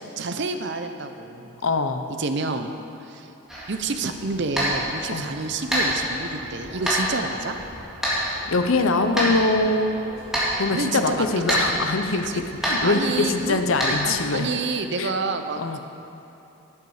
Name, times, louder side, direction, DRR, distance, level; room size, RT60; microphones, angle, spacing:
voice 1, 0.0-1.6 2.2-2.7 3.0-3.3 3.7-7.6 10.7-11.6 12.3-12.4 12.8-13.6 14.0-15.8, right 3 dB, 55° right, 7 dB, 0.7 m, -29 dB
voice 2, 1.6-2.1 5.1-5.3 8.5-10.0 10.6-14.5 15.0-15.1 15.6-15.8, left 3 dB, 70° left, 7 dB, 0.7 m, -23 dB
sound 1, 3.5-14.2, equal, ahead, 2.2 m, -28 dB
Human voice, 4.6-8.5 8.9-11.6, left 1 dB, 85° left, 2.8 m, -44 dB
11.5 x 9.8 x 4.9 m, 3.0 s
head